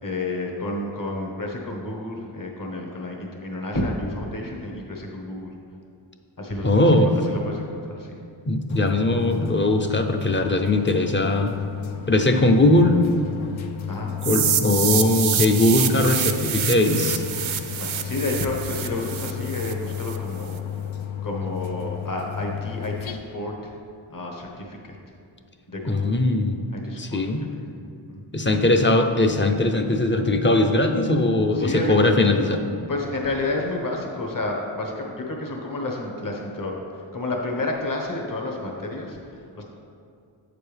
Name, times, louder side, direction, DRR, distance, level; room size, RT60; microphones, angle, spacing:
voice 1, 0.0-5.5 6.4-6.8 7.2-8.2 13.9-14.2 15.6-15.7 17.8-20.6 21.2-23.8 24.1-25.1 25.7-26.1 26.7-27.5 28.1-28.2 31.6-32.3 32.9-39.6, left 2 dB, 40° left, 0 dB, 1.2 m, -30 dB
voice 2, 6.6-7.1 8.5-11.5 12.1-13.0 14.2-17.2 25.8-26.6 27.0-27.4 28.3-32.6, left 2 dB, 25° left, 4 dB, 0.6 m, -20 dB
sound 1, 8.7-23.1, left 9 dB, 70° left, 0.6 m, -33 dB
sound 2, 14.2-20.2, right 8 dB, 75° right, 0.6 m, -26 dB
8.5 x 6.8 x 3.4 m, 2.4 s
wide cardioid pair, 75°, 48 cm